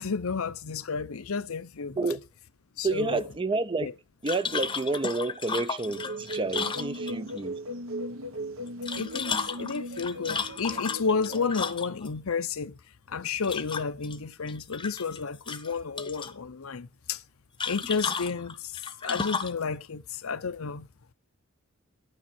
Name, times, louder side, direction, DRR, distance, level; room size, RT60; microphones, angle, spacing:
voice 1, 0.0-2.1 2.8-3.2 3.8-3.9 8.9-12.8 13.1-17.2 17.7-20.9, left 5 dB, 80° left, 0.7 m, -31 dB
voice 2, 2.8-3.9 4.2-7.6, right 3 dB, 25° right, 0.5 m, -29 dB
sound 1, 4.3-7.4 8.7-12.1 13.4-14.2 14.5-15.2 15.5-16.3 17.6-19.6, left 5 dB, 25° left, 0.8 m, -33 dB
sound 2, 5.9-11.5, right 1 dB, 70° right, 1.1 m, -37 dB
10.5 x 9.0 x 4.3 m
head